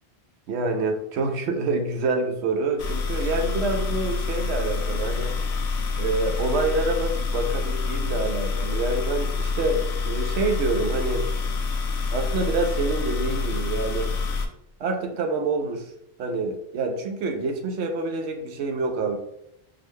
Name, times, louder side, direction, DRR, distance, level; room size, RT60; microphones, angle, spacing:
voice 1, 0.5-5.4 6.0-11.3 12.1-14.1 14.8-15.9 16.2-19.2, right 3 dB, 85° right, 5 dB, 0.9 m, -27 dB
sound 1, 2.8-14.5, left 4 dB, 85° left, 0.8 m, -27 dB
4.1 x 2.2 x 3.1 m, 0.78 s
omnidirectional pair, 1.1 m